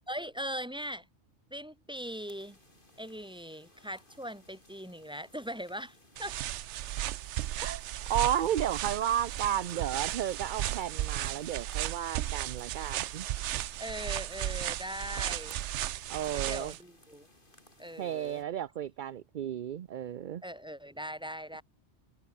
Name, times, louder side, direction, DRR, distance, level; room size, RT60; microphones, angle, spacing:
voice 1, 0.1-1.1 1.5-2.6 3.0-6.4 13.8-15.6 16.3-17.3 17.8-18.4 20.4-21.6, equal, 5° right, 3.7 m, -40 dB
sound 1, 2.0-18.4, left 1 dB, 45° left, 7.5 m, -61 dB
sound 2, 6.2-16.8, right 13 dB, 85° right, 0.9 m, -35 dB
voice 2, 8.1-13.3 16.1-16.7 18.0-20.4, right 10 dB, 55° right, 0.6 m, -33 dB
omnidirectional pair, 1.2 m